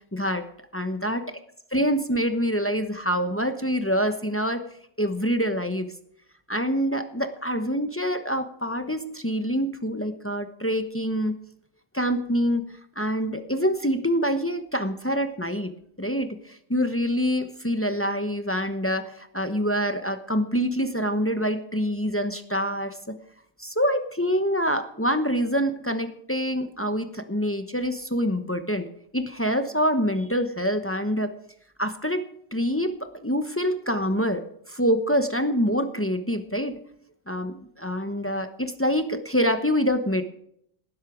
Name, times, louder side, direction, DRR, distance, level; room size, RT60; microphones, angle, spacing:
voice 1, 0.1-0.5 0.7-1.4 1.7-4.6 5.0-5.9 6.5-11.3 11.9-15.7 16.0-23.2 23.6-28.9 29.1-31.3 31.8-36.8 37.3-40.2, equal, 15° left, 8 dB, 0.4 m, -26 dB
18.5 x 11.0 x 5.1 m, 0.70 s
omnidirectional pair, 1.9 m